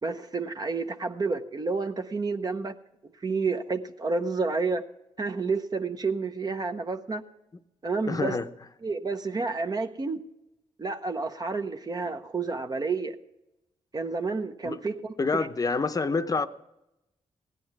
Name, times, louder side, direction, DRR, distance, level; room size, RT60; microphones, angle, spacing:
voice 1, 0.0-2.7 3.2-4.8 5.2-7.2 7.8-8.4 8.8-10.2 10.8-13.1 13.9-15.5, right 4 dB, 35° right, 0.7 m, -30 dB
voice 2, 8.1-8.5 14.6-14.8 15.2-16.5, left 4 dB, 30° left, 0.7 m, -27 dB
16.0 x 10.0 x 4.7 m
cardioid pair, 85°, 12 cm